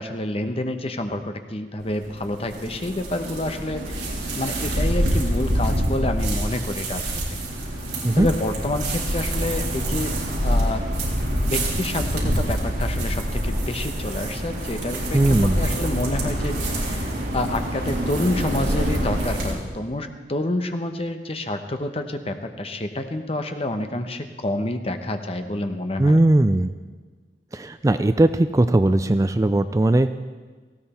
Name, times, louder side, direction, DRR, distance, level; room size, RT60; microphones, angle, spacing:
voice 1, 0.0-7.1 8.1-10.1 10.4-10.8 11.5-26.3, left 1 dB, 35° left, 7 dB, 1.0 m, -28 dB
sound 1, 1.8-19.5, equal, 70° right, 3.8 m, -26 dB
voice 2, 15.1-15.6 26.0-26.7 27.5-30.1, right 1 dB, 20° right, 11 dB, 0.4 m, -18 dB
18.0 x 15.5 x 4.4 m, 1.4 s
head